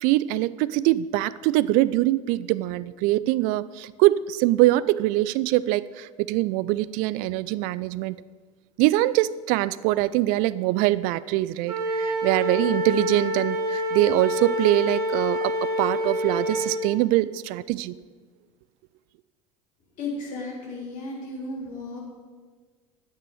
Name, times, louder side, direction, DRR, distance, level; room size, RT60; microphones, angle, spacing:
voice 1, 0.0-8.2 8.8-17.9, right 16 dB, 50° right, 19 dB, 0.4 m, -23 dB
Wind instrument woodwind instrument, 11.7-16.8, equal, 85° right, 1.6 m, -27 dB
voice 2, 20.0-22.0, left 2 dB, 45° left, -3 dB, 3.7 m, -34 dB
10.5 x 9.2 x 5.0 m, 1.5 s
figure-of-eight pair, 70°, 18 cm